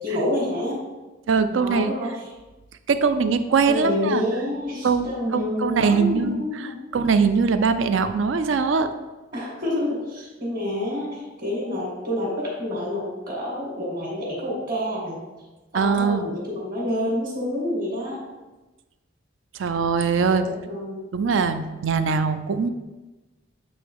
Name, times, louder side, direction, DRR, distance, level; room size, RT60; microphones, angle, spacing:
voice 1, 0.0-0.8 1.5-2.1 3.6-6.8 9.3-15.2 15.7-18.2 20.3-21.1, left 1 dB, 45° right, -5 dB, 1.7 m, -28 dB
voice 2, 1.3-1.9 2.9-4.2 4.8-8.9 15.7-16.3 19.5-20.4 21.1-22.7, right 5 dB, 75° right, 10 dB, 0.4 m, -22 dB
8.0 x 3.1 x 4.7 m, 1.2 s
head